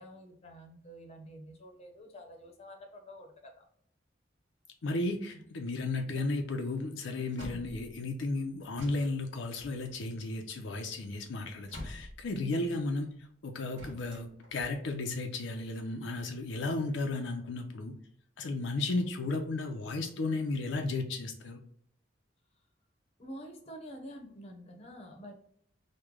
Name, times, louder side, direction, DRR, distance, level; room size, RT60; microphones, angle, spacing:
voice 1, 0.0-3.7 5.2-5.4 7.4-7.7 12.5-12.8 23.2-25.3, equal, 35° left, 3 dB, 0.7 m, -48 dB
voice 2, 4.8-13.1 13.4-17.9 18.4-21.6, left 2 dB, 70° left, 3 dB, 0.5 m, -34 dB
sound 1, 7.3-8.3 8.8-12.7 13.8-15.4 15.9-16.9, left 1 dB, 75° right, 1.3 m, -48 dB
3.1 x 2.1 x 3.5 m, 0.65 s
head